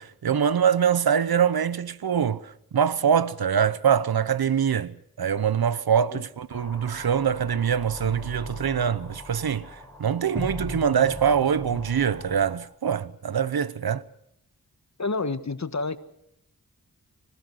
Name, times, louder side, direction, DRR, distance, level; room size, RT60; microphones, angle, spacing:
voice 1, 0.0-9.7 10.0-14.0, right 8 dB, 80° right, 0.9 m, -24 dB
sound 1, 6.5-12.6, left 1 dB, 5° left, 4.7 m, -38 dB
voice 2, 15.0-16.0, left 3 dB, 50° left, 1.5 m, -29 dB
25.0 x 15.5 x 8.1 m
cardioid pair, 40°, 36 cm